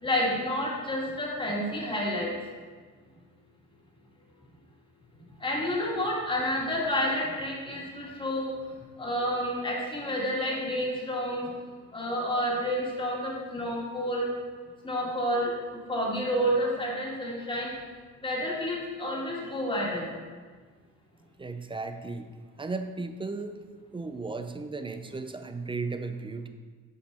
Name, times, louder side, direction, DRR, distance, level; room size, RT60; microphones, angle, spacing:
voice 1, 0.0-2.3 5.4-8.6 9.0-11.5 11.9-14.3 14.8-17.7 18.2-20.1, equal, 15° left, -3 dB, 1.8 m, -29 dB
voice 2, 21.4-22.3 22.6-23.6 23.9-26.5, right 3 dB, 15° right, 8 dB, 0.5 m, -35 dB
7.3 x 5.2 x 4.1 m, 1.5 s
cardioid pair, 90°, 30 cm